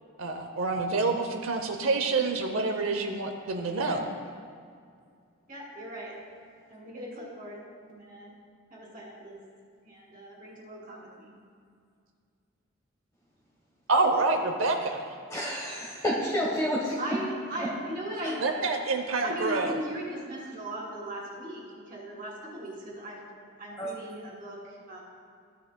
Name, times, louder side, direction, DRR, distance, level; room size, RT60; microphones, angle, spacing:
voice 1, 0.2-4.1 13.9-15.1 18.4-19.8, right 3 dB, 80° right, 4 dB, 0.7 m, -27 dB
voice 2, 5.5-6.1 6.7-8.3 8.7-9.4 9.8-11.3 17.0-18.4 19.2-23.3 23.6-25.0, right 1 dB, 45° right, -3 dB, 2.4 m, -38 dB
voice 3, 15.3-17.2 23.8-23.9, equal, 15° left, -5 dB, 1.1 m, -29 dB
14.5 x 10.0 x 2.2 m, 2.2 s
head